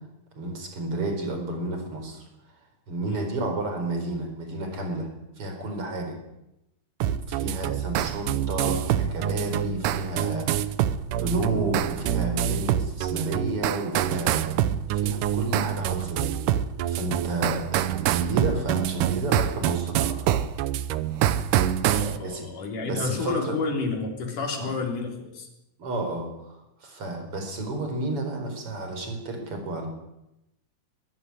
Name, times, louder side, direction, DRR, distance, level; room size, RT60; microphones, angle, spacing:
voice 1, 0.4-2.3 2.9-6.2 7.3-10.5 11.2-14.4 14.9-16.4 16.9-20.4 22.2-22.5 22.8-23.6 24.5-24.7 25.8-29.9, right 2 dB, 45° right, 4 dB, 5.3 m, -31 dB
sound 1, 7.0-22.2, right 11 dB, 90° right, 2.5 m, -26 dB
voice 2, 21.9-25.5, left 4 dB, 85° left, 2 dB, 5.1 m, -30 dB
23.0 x 13.5 x 9.8 m, 0.90 s
omnidirectional pair, 3.5 m